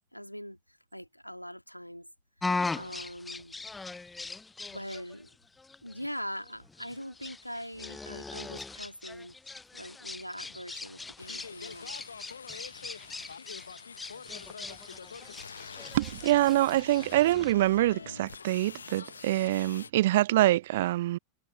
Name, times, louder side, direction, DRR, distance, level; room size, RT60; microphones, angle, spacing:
voice 1, 0.1-2.1 2.7-3.6 4.7-5.3 5.8-9.4 9.7-12.0, equal, 90° left, 3.1 m, -42 dB
sound 1, 2.4-17.5, left 3 dB, 10° left, 0.6 m, -40 dB
sound 2, 11.2-19.9, left 6 dB, 75° left, 1.2 m, -45 dB
voice 2, 15.9-21.2, right 15 dB, 55° right, 1.0 m, -25 dB
figure-of-eight pair, 90°, 0 cm